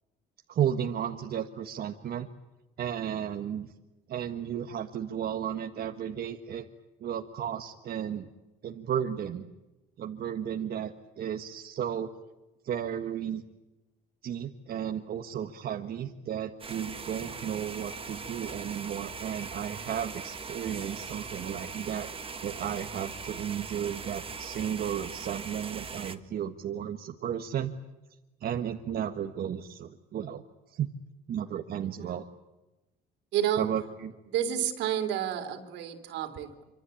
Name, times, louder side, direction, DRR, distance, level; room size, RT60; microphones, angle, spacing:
voice 1, 0.5-2.3 2.8-3.7 4.1-6.6 7.0-8.3 8.6-9.5 10.0-12.1 12.6-13.4 14.2-22.1 22.4-27.7 28.4-30.4 30.7-30.9 31.3-32.2 33.6-34.1, right 9 dB, 55° right, 4 dB, 1.6 m, -33 dB
sound 1, 16.6-26.1, right 5 dB, 30° right, 1.8 m, -40 dB
voice 2, 33.3-33.7 34.3-36.6, right 10 dB, 80° right, 7 dB, 3.7 m, -30 dB
26.5 x 25.5 x 8.6 m, 1.0 s
cardioid pair, 95°, 18 cm